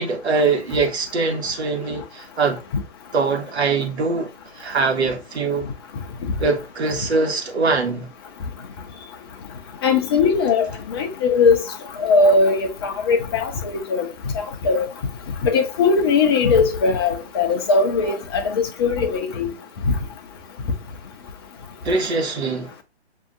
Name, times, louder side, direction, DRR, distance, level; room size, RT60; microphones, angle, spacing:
voice 1, 0.0-2.6 3.1-5.7 6.4-8.1 21.8-22.7, right 4 dB, 70° right, 1.3 m, -22 dB
voice 2, 9.8-11.6 12.0-14.1 14.3-14.9 15.4-19.5 19.9-20.0, left 4 dB, 20° left, 0.5 m, -19 dB
6.7 x 2.7 x 2.5 m
figure-of-eight pair, 135°, 34 cm